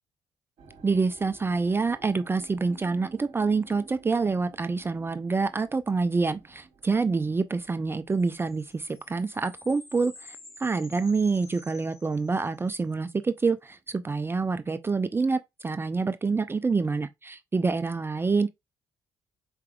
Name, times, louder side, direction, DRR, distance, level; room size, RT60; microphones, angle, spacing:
sound 1, 0.6-11.7 12.0-12.6 13.2-13.3, right 4 dB, 70° right, 1.1 m, -54 dB
voice 1, 0.8-18.5, right 4 dB, 25° right, 0.4 m, -27 dB
sound 2, 8.1-12.7, left 2 dB, 30° left, 1.5 m, -50 dB
4.6 x 3.5 x 2.2 m
hypercardioid pair, 50°, 9 cm